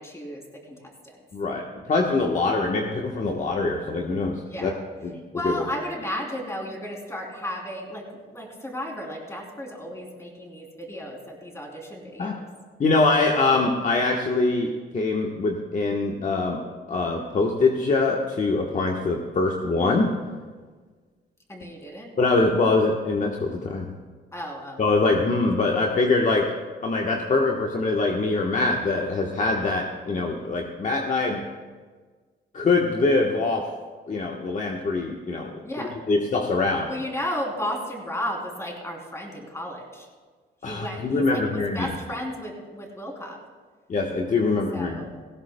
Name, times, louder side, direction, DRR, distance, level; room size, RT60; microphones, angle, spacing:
voice 1, 0.0-1.2 4.4-4.8 5.3-8.1 8.3-12.5 21.5-22.1 24.3-24.9 35.6-36.0 36.9-40.1 40.6-43.4 44.4-45.1, equal, 15° left, 0 dB, 3.3 m, -34 dB
voice 2, 1.3-4.7 5.0-5.2 5.4-5.7 12.2-12.3 12.8-16.6 16.9-20.1 22.2-23.9 24.8-26.4 26.8-31.4 32.5-33.7 34.1-35.6 36.1-36.9 40.6-41.9 43.9-45.0, left 3 dB, 40° left, 1 dB, 1.2 m, -23 dB
18.0 x 16.0 x 2.2 m, 1.5 s
cardioid pair, 90°, 20 cm